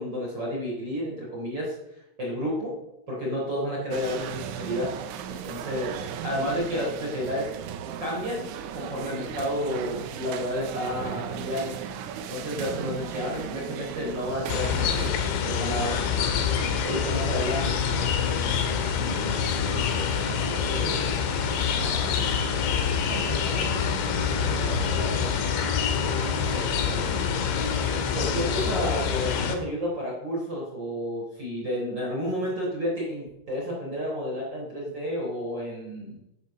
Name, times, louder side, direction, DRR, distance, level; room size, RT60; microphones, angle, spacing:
voice 1, 0.0-1.7 2.2-2.7 3.1-5.0 5.3-7.5 8.0-11.8 12.3-15.1 15.4-16.0 16.8-17.8 26.5-26.8 28.1-36.2, equal, 25° right, -3 dB, 3.8 m, -31 dB
sound 1, 3.9-15.1, right 9 dB, 80° right, 3.3 m, -36 dB
voice 2, 5.9-6.4 19.1-21.3 21.6-22.2 22.9-25.4 26.3-27.4, right 1 dB, 45° left, -3 dB, 4.5 m, -39 dB
sound 2, 14.5-29.6, left 6 dB, 75° left, 3.7 m, -26 dB
11.5 x 10.5 x 6.5 m, 0.87 s
omnidirectional pair, 5.5 m